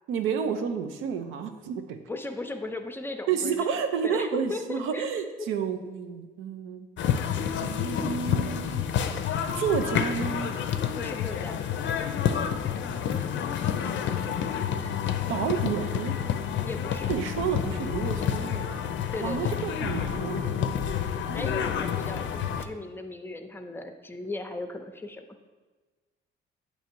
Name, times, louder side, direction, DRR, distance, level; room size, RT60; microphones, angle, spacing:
voice 1, 0.1-2.0 3.3-6.9 7.6-8.8 9.5-10.5 13.7-14.2 15.3-16.2 17.1-18.8 19.2-20.5 21.3-21.7, right 7 dB, 90° right, 7 dB, 0.5 m, -30 dB
voice 2, 2.1-5.5 5.8-5.9 10.9-11.6 16.6-17.1 19.1-19.6 21.3-25.3, left 2 dB, 10° left, 6 dB, 0.5 m, -37 dB
sound 1, 7.0-22.6, left 8 dB, 70° left, 0.5 m, -29 dB
7.9 x 2.8 x 4.4 m, 1.3 s
cardioid pair, 90°, 20 cm